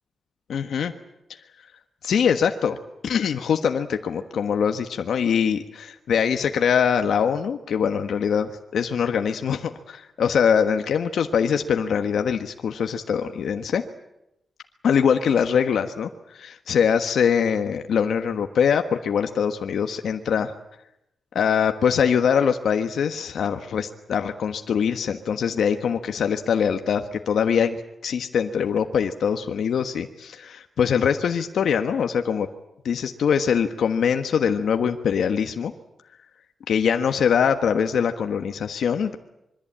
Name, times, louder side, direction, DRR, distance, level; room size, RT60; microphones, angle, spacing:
voice 1, 0.5-0.9 1.3-1.4 2.0-2.8 3.0-13.8 14.8-20.5 21.3-32.5 32.8-35.7 36.7-39.2, left 7 dB, 75° left, 6 dB, 1.4 m, -23 dB
25.5 x 23.0 x 8.9 m, 0.85 s
wide cardioid pair, 135°, 0 cm